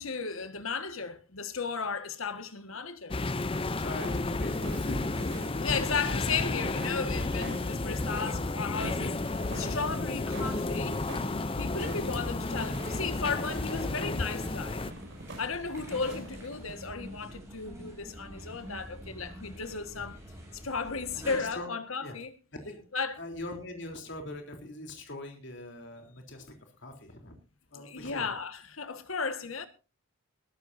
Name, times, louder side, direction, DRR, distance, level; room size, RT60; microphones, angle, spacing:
voice 1, 0.0-3.1 5.5-9.2 9.5-11.0 11.5-14.8 15.4-20.2 20.5-22.3 22.9-23.2 27.7-29.7, left 5 dB, 80° left, 1.7 m, -35 dB
sound 1, 3.1-14.9, left 2 dB, 25° left, 0.6 m, -32 dB
voice 2, 3.5-5.7 19.6-19.7 21.3-21.7 22.0-22.2 22.5-22.9 23.2-26.4 26.8-27.4 27.7-28.4, left 1 dB, 60° left, 3.6 m, -42 dB
sound 2, 3.9-16.7, right 1 dB, 60° right, 6.4 m, -45 dB
sound 3, 4.1-21.5, equal, 15° right, 7.7 m, -46 dB
21.0 x 14.0 x 2.7 m
head